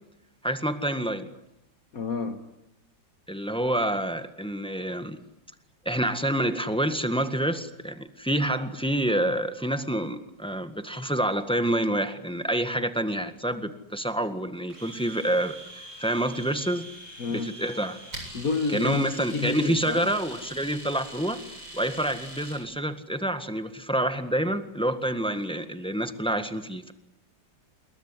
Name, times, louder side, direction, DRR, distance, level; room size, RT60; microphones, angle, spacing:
voice 1, 0.4-1.3 3.3-5.2 5.8-16.9 17.3-18.0 18.7-21.4 21.7-26.9, right 1 dB, 5° left, 9 dB, 1.5 m, -27 dB
voice 2, 1.9-2.4 17.2-17.6 18.3-20.1, left 4 dB, 50° left, 6 dB, 1.8 m, -29 dB
Domestic sounds home sounds, 14.7-22.6, right 1 dB, 85° right, 8.6 m, -43 dB
28.0 x 21.5 x 9.9 m, 0.89 s
omnidirectional pair, 2.0 m